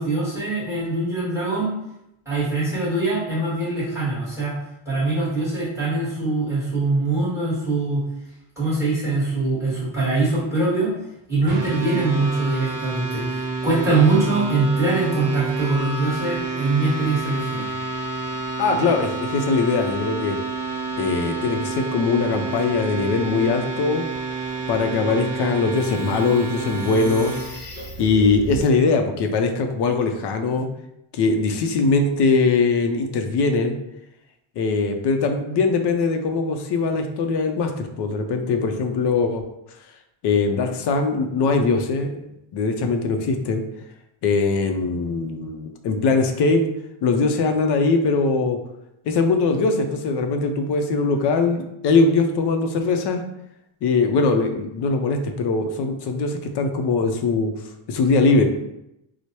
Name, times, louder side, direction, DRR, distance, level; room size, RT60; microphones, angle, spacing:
voice 1, 0.0-1.7 2.2-4.5 4.9-8.0 8.6-10.9 11.3-17.7, right 3 dB, 5° right, -8 dB, 1.2 m, -23 dB
sound 1, 11.5-27.5, right 4 dB, 40° right, 0.8 m, -29 dB
voice 2, 18.6-20.4 21.0-24.0 24.7-27.6 28.0-30.7 31.1-33.8 34.6-39.4 40.2-42.2 42.5-43.6 44.2-46.6 47.0-48.6 49.1-53.2 53.8-57.5 57.9-58.4, left 4 dB, 60° left, 5 dB, 0.5 m, -21 dB
sound 2, 25.0-28.7, right 2 dB, 20° left, 0.8 m, -37 dB
4.5 x 2.1 x 2.8 m, 0.84 s
cardioid pair, 175°, 48 cm